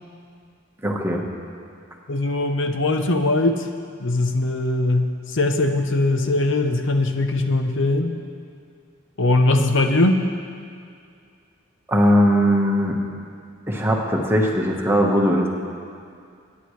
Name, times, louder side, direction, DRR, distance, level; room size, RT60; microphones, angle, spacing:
voice 1, 0.8-1.2 11.9-13.0 13.7-15.5, equal, 10° right, -1 dB, 1.2 m, -19 dB
voice 2, 2.1-3.7 4.0-8.1 9.2-10.2, left 2 dB, 65° left, 6 dB, 0.8 m, -20 dB
23.0 x 9.7 x 3.2 m, 2.3 s
head